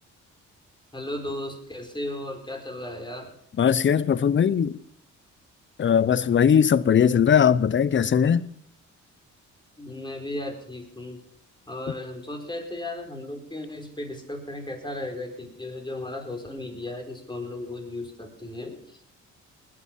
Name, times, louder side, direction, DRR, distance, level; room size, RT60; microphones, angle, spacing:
voice 1, 0.9-3.3 9.8-11.2 11.7-19.1, left 1 dB, 15° left, 4.7 m, -35 dB
voice 2, 3.6-4.8 5.8-8.5, left 8 dB, 40° left, 0.8 m, -20 dB
20.0 x 8.7 x 7.3 m
cardioid pair, 90°, 30 cm